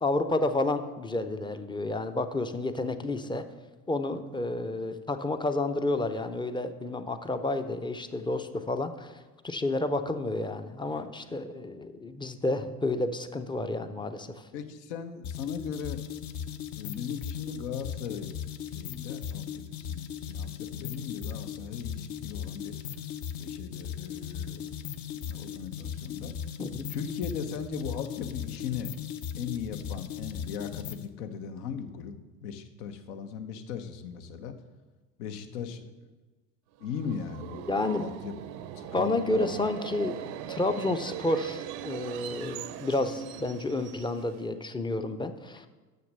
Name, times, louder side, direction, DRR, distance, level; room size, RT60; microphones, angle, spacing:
voice 1, 0.0-3.4 3.9-14.5 26.6-26.8 37.7-38.0 38.9-45.7, left 2 dB, 10° left, 9 dB, 0.5 m, -30 dB
voice 2, 14.5-16.0 16.7-18.3 18.7-22.7 23.4-24.7 25.1-26.4 26.9-28.9 29.3-34.6 35.2-35.9 36.8-37.7 38.0-38.3 38.8-39.5, left 7 dB, 70° left, 8 dB, 1.0 m, -38 dB
sound 1, 15.2-31.1, left 9 dB, 45° left, 0.7 m, -38 dB
Subway metro underground, 36.8-44.5, right 10 dB, 55° right, 0.7 m, -40 dB
6.6 x 6.4 x 6.6 m, 1.2 s
hypercardioid pair, 75°, 47 cm